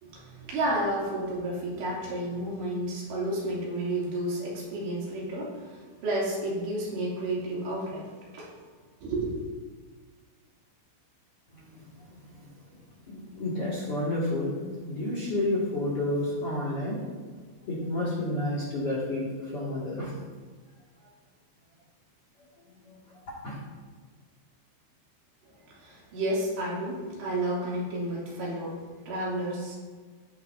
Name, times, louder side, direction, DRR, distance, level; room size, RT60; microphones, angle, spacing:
voice 1, 0.0-8.6 9.0-9.3 25.7-29.8, right 1 dB, 70° right, -5 dB, 4.8 m, -31 dB
voice 2, 13.1-14.6 14.9-17.0 17.7-19.3 19.5-20.1 22.9-23.0 23.4-23.6, left 1 dB, 45° left, -6 dB, 2.0 m, -30 dB
16.5 x 10.0 x 2.6 m, 1.4 s
omnidirectional pair, 5.4 m